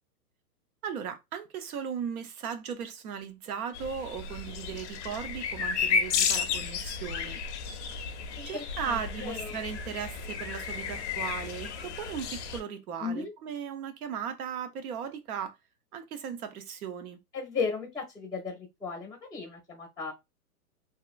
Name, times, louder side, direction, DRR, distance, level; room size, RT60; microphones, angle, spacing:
voice 1, 0.8-7.4 8.5-15.5 15.9-17.2, right 7 dB, 65° right, 0.8 m, -37 dB
sound 1, 3.7-12.6, left 6 dB, 50° left, 0.5 m, -33 dB
voice 2, 8.4-9.6 13.0-13.3 17.3-20.1, left 5 dB, 5° right, 0.5 m, -35 dB
2.8 x 2.3 x 2.4 m
hypercardioid pair, 145°, 47 cm